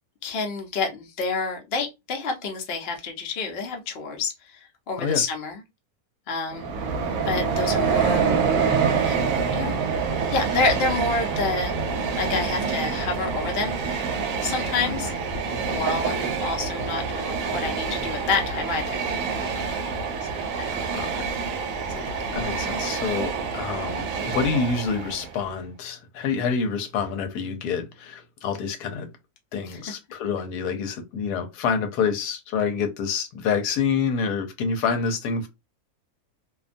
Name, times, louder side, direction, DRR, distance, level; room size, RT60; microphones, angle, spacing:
voice 1, 0.2-5.6 6.3-6.7 7.3-8.3 9.0-9.7 10.3-11.7 12.2-13.7 14.4-15.1 15.7-19.1 20.3-21.1 21.9-22.2 29.7-29.8, left 3 dB, 50° left, 0.8 m, -28 dB
Train, 6.5-25.4, right 5 dB, 70° right, 0.9 m, -26 dB
voice 2, 14.8-15.2 20.9-21.2 22.3-29.1 29.5-35.5, left 5 dB, 85° left, 1.2 m, -27 dB
2.6 x 2.2 x 2.5 m
omnidirectional pair, 1.6 m